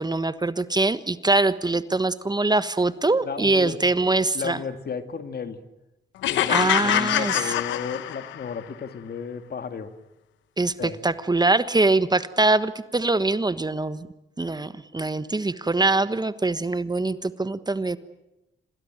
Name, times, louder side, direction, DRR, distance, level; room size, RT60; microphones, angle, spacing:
voice 1, 0.0-4.6 6.5-7.5 10.6-14.1 14.4-18.0, right 2 dB, 20° right, 13 dB, 1.3 m, -23 dB
voice 2, 3.2-3.8 4.3-5.6 6.3-6.6 6.8-9.9 10.8-11.0, left 6 dB, 60° left, 8 dB, 2.4 m, -33 dB
sound 1, 6.2-8.5, left 13 dB, 90° left, 1.1 m, -24 dB
27.0 x 19.5 x 9.1 m, 0.92 s
supercardioid pair, 55°, 19 cm